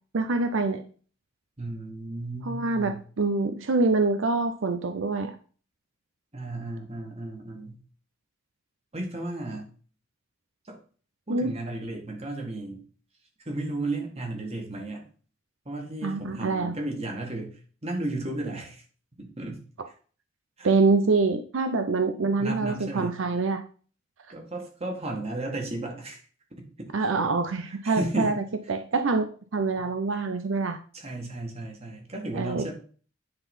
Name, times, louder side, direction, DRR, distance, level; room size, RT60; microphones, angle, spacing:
voice 1, 0.1-0.8 2.4-5.3 11.3-11.5 16.0-16.8 20.6-23.6 26.9-28.3 28.7-30.8 32.3-32.7, right 3 dB, 75° right, 8 dB, 0.6 m, -25 dB
voice 2, 1.6-3.0 6.3-7.8 8.9-9.7 10.6-10.8 11.3-12.8 13.5-15.0 15.7-17.5 17.8-18.8 19.2-19.6 20.6-20.7 22.2-23.2 24.3-26.2 26.8-26.9 27.8-28.4 30.9-32.7, right 2 dB, 30° right, 1 dB, 2.1 m, -34 dB
9.7 x 4.0 x 5.5 m, 0.41 s
head